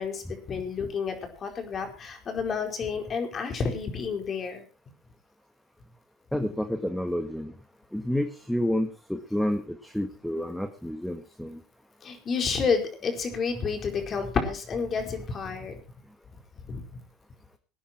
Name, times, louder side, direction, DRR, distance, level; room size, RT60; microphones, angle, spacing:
voice 1, 0.0-4.6 12.0-15.8 16.7-16.8, left 5 dB, 40° left, 5 dB, 4.5 m, -30 dB
voice 2, 6.3-7.5 7.9-11.6, left 1 dB, 5° left, 8 dB, 1.6 m, -29 dB
19.0 x 10.0 x 4.5 m, 0.35 s
supercardioid pair, 85°, 0 cm